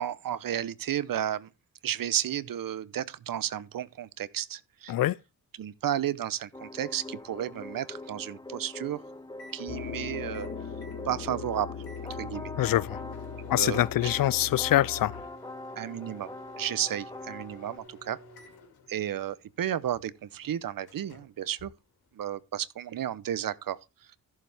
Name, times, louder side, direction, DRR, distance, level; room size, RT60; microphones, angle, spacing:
voice 1, 0.0-1.5 1.8-4.9 5.6-9.0 9.5-10.5 11.1-11.7 12.2-12.5 13.6-13.8 15.8-16.3 16.6-18.2 18.9-21.7 22.1-23.8, right 10 dB, 65° right, 0.8 m, -32 dB
sound 1, 6.5-17.8, left 2 dB, 10° left, 0.7 m, -43 dB
Microwave oven, 6.7-22.4, left 3 dB, 90° left, 2.5 m, -53 dB
sound 2, 9.7-15.2, left 6 dB, 35° left, 1.4 m, -40 dB
voice 2, 12.6-13.0 13.5-15.2, left 13 dB, 65° left, 0.5 m, -25 dB
14.0 x 7.2 x 3.4 m
cardioid pair, 70°, 36 cm